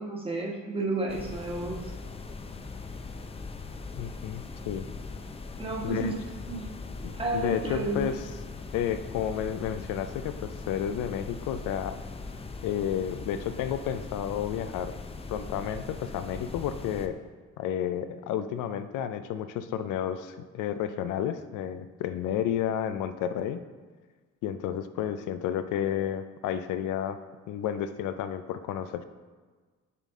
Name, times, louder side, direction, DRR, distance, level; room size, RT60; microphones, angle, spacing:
voice 1, 0.0-1.8 5.6-6.2 6.5-6.7 7.1-8.1, right 2 dB, 20° right, -1 dB, 1.2 m, -31 dB
sound 1, 1.1-17.1, left 3 dB, 20° left, 0.5 m, -40 dB
voice 2, 4.0-4.9 5.8-6.1 7.3-8.2 8.7-12.0 12.6-14.9 15.3-17.2 17.6-23.6 24.4-27.2 27.5-29.0, left 9 dB, 85° left, 10 dB, 0.5 m, -31 dB
6.8 x 4.1 x 3.6 m, 1.4 s
cardioid pair, 90°, 30 cm